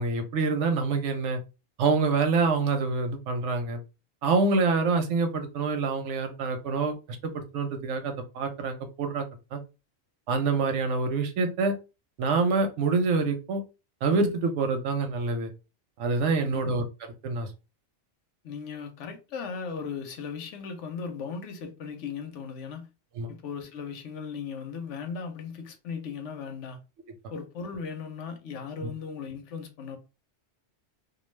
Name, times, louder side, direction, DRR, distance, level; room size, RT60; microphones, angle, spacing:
voice 1, 0.0-1.4 1.8-3.8 4.2-6.9 7.3-9.6 10.3-11.7 12.2-13.6 14.0-15.5 16.0-16.8 17.2-17.5 23.2-23.3 28.8-28.9, right 4 dB, 90° right, 1.0 m, -26 dB
voice 2, 16.4-16.7 18.4-22.9 23.3-26.8 27.3-30.0, left 5 dB, 90° left, 1.0 m, -37 dB
2.3 x 2.3 x 3.2 m
omnidirectional pair, 1.2 m